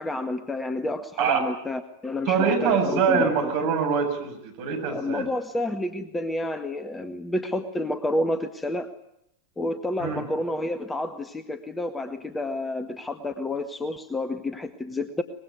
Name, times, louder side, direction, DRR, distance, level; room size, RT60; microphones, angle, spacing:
voice 1, 0.0-3.5 4.8-8.9 9.6-15.2, left 1 dB, 10° left, 10 dB, 1.8 m, -30 dB
voice 2, 2.3-5.3 10.0-10.3, right 6 dB, 50° right, 4 dB, 7.4 m, -24 dB
24.5 x 21.5 x 9.4 m, 0.79 s
figure-of-eight pair, 90°, 0 cm